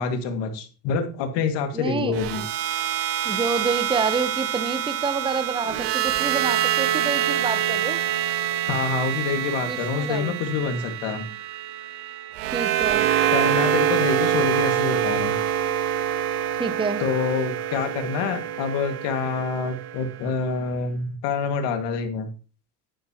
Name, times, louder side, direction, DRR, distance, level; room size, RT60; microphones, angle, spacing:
voice 1, 0.0-2.4 8.7-11.3 13.3-15.4 17.0-22.3, left 5 dB, 65° left, 7 dB, 2.2 m, -26 dB
voice 2, 1.7-2.5 3.2-8.0 9.7-10.4 12.5-13.1 16.6-17.0, right 4 dB, 10° right, 11 dB, 0.9 m, -28 dB
sound 1, 2.1-20.3, right 11 dB, 75° right, 1.6 m, -26 dB
10.0 x 9.9 x 3.0 m, 0.36 s
supercardioid pair, 90°, 46 cm